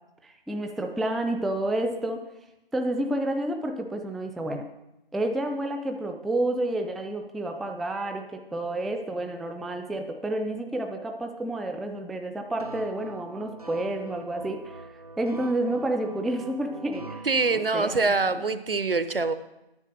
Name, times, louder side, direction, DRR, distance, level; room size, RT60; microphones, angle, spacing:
voice 1, 0.2-2.2 2.7-4.7 5.1-14.9 15.2-17.2 17.5-18.4, right 1 dB, ahead, 5 dB, 0.3 m, -30 dB
sound 1, 12.6-17.9, right 2 dB, 40° right, 0.6 m, -43 dB
voice 2, 17.3-19.3, right 3 dB, 70° right, 12 dB, 0.8 m, -24 dB
9.8 x 7.6 x 6.5 m, 0.93 s
figure-of-eight pair, 170°, 30 cm